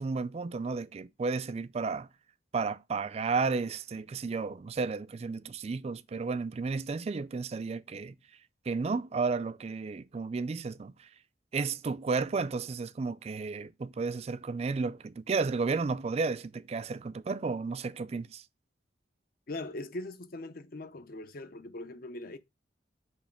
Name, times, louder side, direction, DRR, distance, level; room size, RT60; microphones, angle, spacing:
voice 1, 0.0-2.1 2.5-8.2 8.7-11.1 11.5-18.4, right 4 dB, 35° right, 0.3 m, -33 dB
voice 2, 19.5-22.4, left 2 dB, 55° left, 0.6 m, -41 dB
6.3 x 3.0 x 5.8 m
head